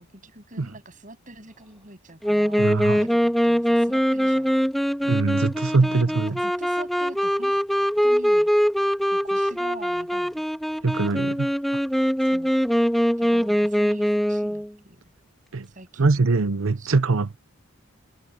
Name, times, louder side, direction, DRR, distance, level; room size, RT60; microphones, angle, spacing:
voice 1, 0.0-4.5 5.8-7.6 8.0-8.5 9.1-10.4 12.3-12.5 13.2-15.0 15.7-16.3 16.8-16.9, right 2 dB, 40° right, 7.9 m, -44 dB
Wind instrument woodwind instrument, 2.2-14.7, equal, ahead, 2.1 m, -22 dB
voice 2, 2.6-3.0 5.0-6.4 10.8-11.5 15.5-15.7 16.0-17.4, right 3 dB, 75° right, 0.7 m, -22 dB
head